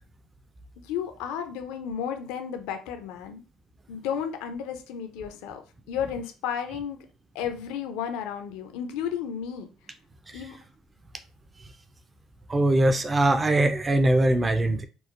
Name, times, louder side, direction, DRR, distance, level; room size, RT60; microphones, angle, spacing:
voice 1, 0.8-3.4 3.9-7.1 7.3-9.7 10.3-10.6, left 8 dB, 75° left, 0.4 m, -33 dB
voice 2, 12.5-14.9, right 1 dB, 25° right, 0.4 m, -21 dB
2.9 x 2.0 x 2.4 m
hypercardioid pair, 70°, 0 cm